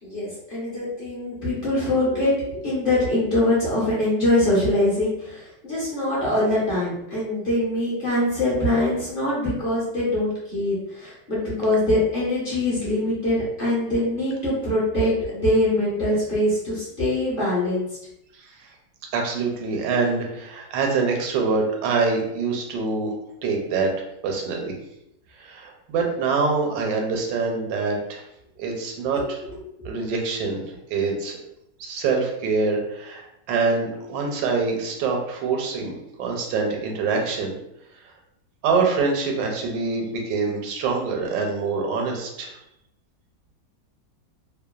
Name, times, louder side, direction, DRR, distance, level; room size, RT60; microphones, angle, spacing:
voice 1, 0.0-2.3 2.6-17.8 29.1-29.2 29.8-29.9, left 1 dB, 45° left, -8 dB, 0.7 m, -23 dB
voice 2, 19.1-23.1 23.4-23.9 24.2-24.7 25.4-28.2 28.6-29.4 29.8-30.6 30.9-31.4 31.8-37.5 38.6-42.5, right 4 dB, 85° right, 1 dB, 1.3 m, -25 dB
2.9 x 2.2 x 2.3 m, 0.82 s
omnidirectional pair, 1.9 m